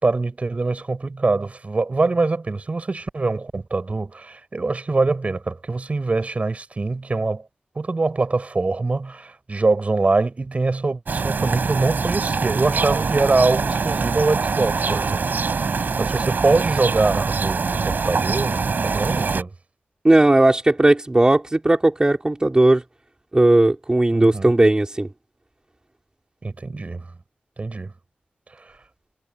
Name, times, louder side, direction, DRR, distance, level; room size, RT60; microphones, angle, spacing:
voice 1, 0.0-7.4 7.8-15.2 15.5-19.5 24.1-24.5 26.4-27.0 27.6-27.9 28.6-28.7, right 3 dB, 40° right, 5.7 m, -23 dB
sound 1, 11.1-19.4, right 4 dB, 65° right, 3.8 m, -24 dB
voice 2, 20.0-22.8 23.3-25.1, right 2 dB, 20° right, 3.9 m, -16 dB
wide cardioid pair, 95°, 3 cm